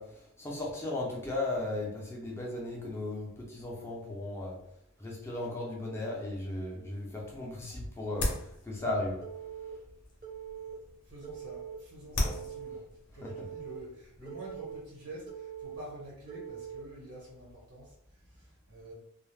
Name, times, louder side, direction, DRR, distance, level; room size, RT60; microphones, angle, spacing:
voice 1, 0.0-4.6 5.0-9.2 13.2-13.3, left 2 dB, 10° left, -3 dB, 0.4 m, -36 dB
sound 1, 7.2-14.9, left 1 dB, 55° left, 0.6 m, -40 dB
Telephone, 9.2-9.7 10.2-10.7 11.2-11.7 12.2-12.8 13.2-13.8 14.3-14.8 15.3-15.8 16.3-16.8, right 9 dB, 40° right, 0.6 m, -43 dB
voice 2, 11.0-12.8 13.1-18.9, right 1 dB, 85° right, -5 dB, 1.2 m, -48 dB
2.3 x 2.0 x 3.2 m, 0.78 s
head